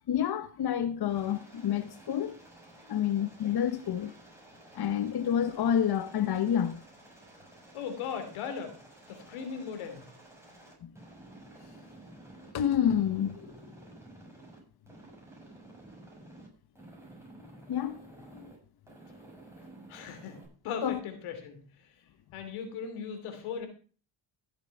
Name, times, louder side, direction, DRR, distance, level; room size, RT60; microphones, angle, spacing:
voice 1, 0.1-2.3 2.9-4.1 4.7-6.8 10.8-10.9 12.5-13.5 17.7-17.9 18.3-18.5 20.8-21.0, left 9 dB, 50° left, 1.0 m, -28 dB
Aircraft, 1.0-12.5 12.8-14.6 14.9-16.5 16.8-18.6 18.9-20.5, right 2 dB, 5° right, 7.0 m, -53 dB
voice 2, 7.7-8.8 9.1-10.0 19.9-21.9 22.3-23.7, left 6 dB, 85° left, 3.0 m, -38 dB
15.0 x 7.7 x 4.7 m
supercardioid pair, 70°, 48 cm